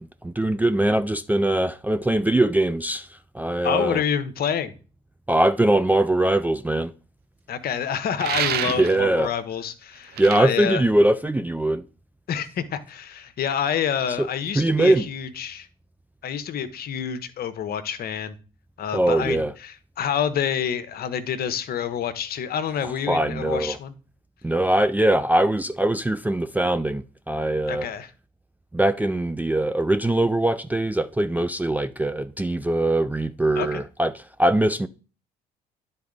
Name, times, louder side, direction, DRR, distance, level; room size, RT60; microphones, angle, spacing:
voice 1, 0.2-4.0 5.3-6.9 8.7-9.3 10.2-11.8 14.2-14.3 14.6-15.1 18.9-19.5 23.1-23.8 24.4-27.9 28.7-34.9, right 1 dB, 10° right, 0.4 m, -22 dB
voice 2, 3.6-4.7 7.5-10.8 12.3-15.7 16.2-18.4 18.8-23.9 27.7-28.1 33.6-33.8, left 8 dB, 50° left, 0.8 m, -28 dB
sound 1, 8.2-9.0 10.2-10.4, right 10 dB, 55° right, 0.6 m, -27 dB
10.5 x 4.0 x 3.7 m
hypercardioid pair, 50°, 20 cm